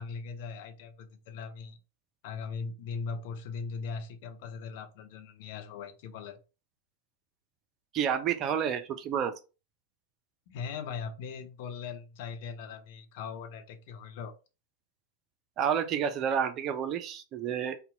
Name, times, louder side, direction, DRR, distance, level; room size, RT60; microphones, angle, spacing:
voice 1, 0.0-1.8 2.2-6.4 10.5-14.3, left 5 dB, 50° left, 0.5 m, -39 dB
voice 2, 7.9-9.4 15.6-17.8, right 8 dB, 35° right, 0.4 m, -30 dB
2.7 x 2.1 x 3.8 m
figure-of-eight pair, 90°, 0 cm